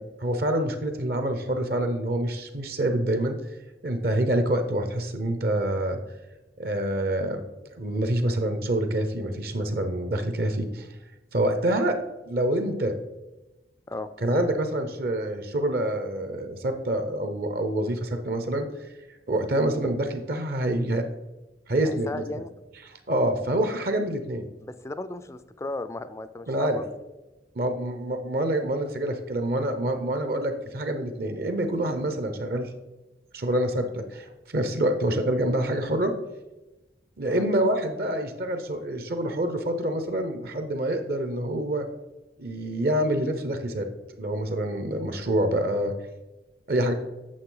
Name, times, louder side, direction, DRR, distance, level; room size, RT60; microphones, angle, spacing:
voice 1, 0.0-3.4 3.8-6.0 6.6-7.4 7.7-10.9 11.3-12.0 12.2-12.9 14.2-18.6 19.3-21.0 21.7-22.2 22.9-24.5 26.5-26.8 27.5-32.7 33.3-36.1 37.2-41.9 42.4-43.9 44.2-45.9 46.7-46.9, right 1 dB, 55° right, 7 dB, 0.7 m, -26 dB
voice 2, 21.8-22.5 24.6-26.9 37.3-37.4, left 2 dB, 15° left, 13 dB, 0.3 m, -35 dB
8.6 x 6.7 x 3.8 m, 1.1 s
head